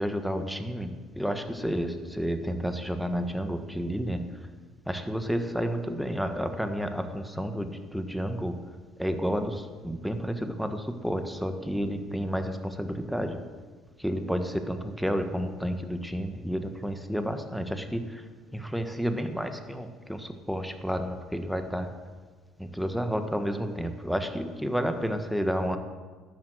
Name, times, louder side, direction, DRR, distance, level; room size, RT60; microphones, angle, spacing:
voice 1, 0.0-4.5 4.9-8.6 9.0-13.4 14.0-21.9 22.6-25.8, equal, ahead, 7 dB, 1.5 m, -31 dB
12.5 x 8.8 x 7.9 m, 1.4 s
hypercardioid pair, 55°, 0 cm